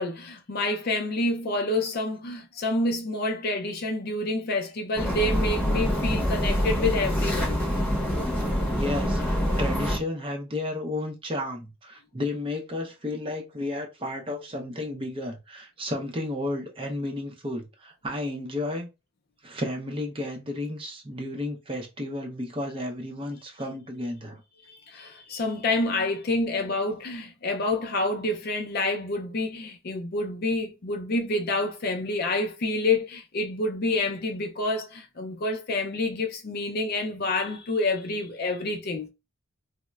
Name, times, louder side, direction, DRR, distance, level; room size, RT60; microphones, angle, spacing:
voice 1, 0.0-7.6 24.7-39.1, left 2 dB, 45° left, 0.4 m, -28 dB
sound 1, 5.0-10.0, equal, 5° left, 0.8 m, -25 dB
voice 2, 8.8-18.9 19.4-24.4, left 1 dB, 25° right, 0.6 m, -32 dB
4.0 x 2.0 x 2.3 m
head